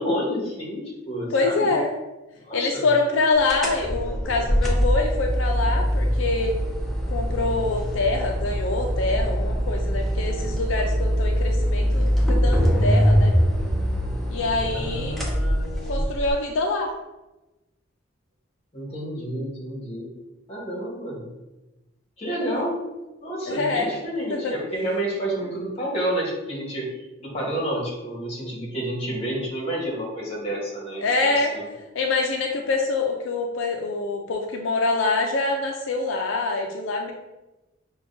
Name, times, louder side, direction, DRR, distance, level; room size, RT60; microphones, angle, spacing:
voice 1, 0.0-1.7 2.4-2.9 14.7-16.0 18.7-20.1 20.5-21.3 22.2-22.8 23.2-26.9 27.2-31.7, right 1 dB, 30° left, -4 dB, 1.2 m, -30 dB
voice 2, 1.3-1.9 2.5-6.5 7.1-13.3 14.3-15.2 15.9-16.9 22.4-22.6 23.5-23.9 24.3-24.5 31.0-31.5 31.9-37.1, left 3 dB, 80° left, 2 dB, 0.4 m, -25 dB
sound 1, 3.5-16.3, equal, ahead, 0.5 m, -23 dB
5.7 x 2.2 x 2.6 m, 1.0 s
head